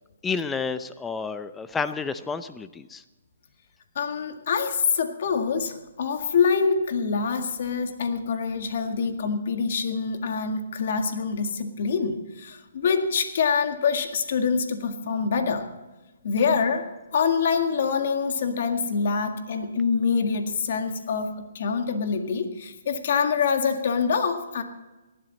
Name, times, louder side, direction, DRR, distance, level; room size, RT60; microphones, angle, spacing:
voice 1, 0.2-3.0, left 5 dB, 10° left, 12 dB, 0.7 m, -30 dB
voice 2, 4.0-15.7 16.2-16.9 17.1-24.6, left 5 dB, 55° left, 6 dB, 1.9 m, -25 dB
18.5 x 12.5 x 4.2 m, 1.1 s
hypercardioid pair, 150°, 0 cm